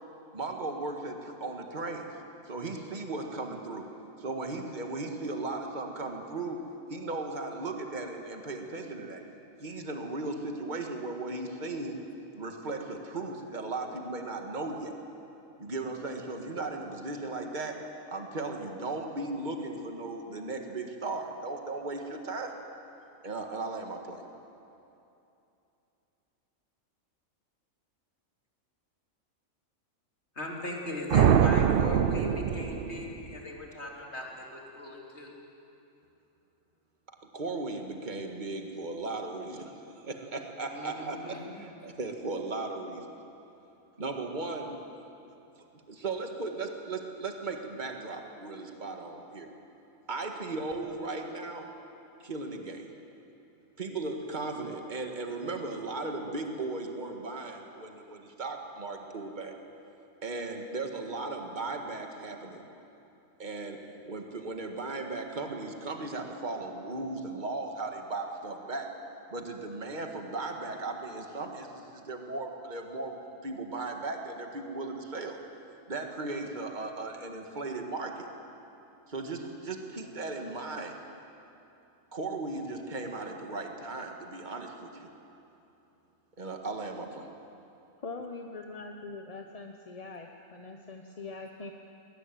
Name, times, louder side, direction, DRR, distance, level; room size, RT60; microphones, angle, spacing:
voice 1, 0.3-2.1 2.5-3.9 4.2-6.6 6.9-9.2 9.6-12.0 12.3-15.0 15.6-17.8 18.1-22.6 23.2-24.2 37.3-43.1 44.0-44.8 45.9-49.5 50.1-51.7 52.2-52.9 53.8-59.5 60.2-62.6 63.4-63.8 64.1-68.9 69.3-75.4 75.9-78.3 79.1-81.0 82.1-85.1 86.4-87.3, right 3 dB, 35° right, 3 dB, 1.9 m, -36 dB
voice 2, 30.4-35.3 40.7-41.6, left 1 dB, 55° left, -2 dB, 3.6 m, -38 dB
sound 1, 31.1-33.4, right 8 dB, 55° right, 0.7 m, -24 dB
voice 3, 88.0-91.7, left 3 dB, 30° left, 3 dB, 0.9 m, -42 dB
20.5 x 18.5 x 9.2 m, 2.9 s
omnidirectional pair, 1.4 m